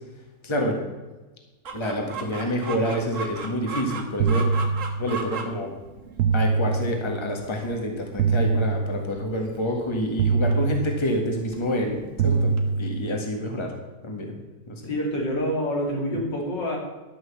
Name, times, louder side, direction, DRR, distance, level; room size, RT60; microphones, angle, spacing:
voice 1, 0.4-0.8 1.7-4.4 5.0-5.7 6.3-13.7 14.0-14.4 14.7-14.9, equal, 15° left, 2 dB, 1.7 m, -28 dB
Chicken rooster, 1.6-12.7, right 4 dB, 50° right, 1.5 m, -38 dB
sound 1, 4.2-5.4 6.2-7.4 8.2-9.4 10.2-11.4 12.2-13.4, right 4 dB, 70° right, 1.1 m, -24 dB
voice 2, 14.8-16.8, equal, 85° left, -1 dB, 3.3 m, -27 dB
12.0 x 6.2 x 7.2 m, 1.2 s
omnidirectional pair, 1.9 m